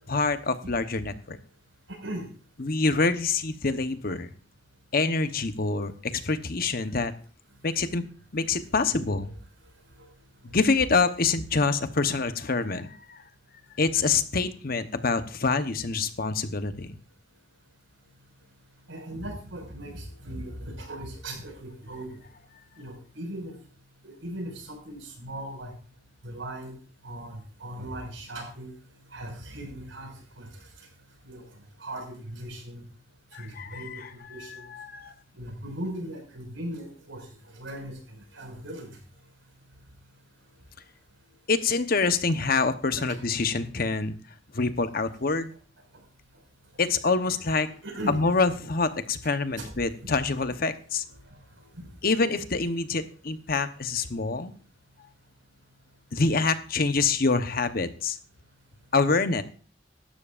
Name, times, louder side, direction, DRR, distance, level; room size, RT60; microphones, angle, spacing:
voice 1, 0.1-1.4 2.6-4.3 4.9-7.1 7.6-8.0 8.3-9.3 10.4-13.2 13.8-17.0 33.3-33.8 34.8-35.1 41.5-44.1 44.5-45.5 46.8-47.7 48.1-51.0 52.0-54.5 56.1-58.2 58.9-59.4, left 4 dB, 50° left, 10 dB, 1.0 m, -26 dB
voice 2, 1.9-2.3 18.9-22.1 22.8-23.5 24.0-25.7 26.2-26.7 27.0-28.7 29.1-30.5 31.2-31.5 31.8-32.8 33.4-34.6 35.3-37.2 37.5-37.9 38.3-38.9 43.0-43.2 47.8-48.2 49.6-49.7 50.0-50.2 51.8-51.9, right 1 dB, 85° right, 2 dB, 5.7 m, -38 dB
17.0 x 12.5 x 2.6 m, 0.40 s
head